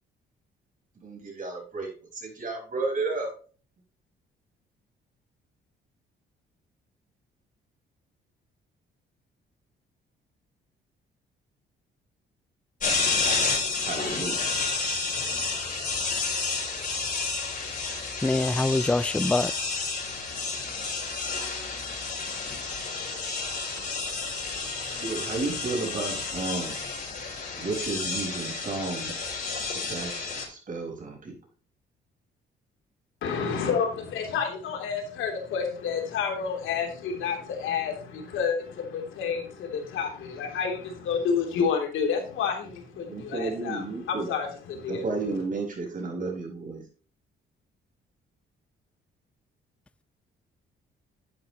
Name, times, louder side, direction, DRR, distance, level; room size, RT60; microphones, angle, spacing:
voice 1, 1.0-3.3 13.8-14.6 25.0-26.7 27.6-29.2 29.7-31.4 43.0-44.3 44.9-46.8, right 3 dB, 40° right, 5.1 m, -32 dB
sound 1, 12.8-30.5, left 4 dB, 45° left, 6.2 m, -30 dB
voice 2, 18.2-19.5, left 2 dB, 5° left, 0.3 m, -24 dB
voice 3, 33.2-45.1, left 6 dB, 85° left, 3.1 m, -29 dB
11.0 x 9.2 x 3.0 m
cardioid pair, 90°, 20 cm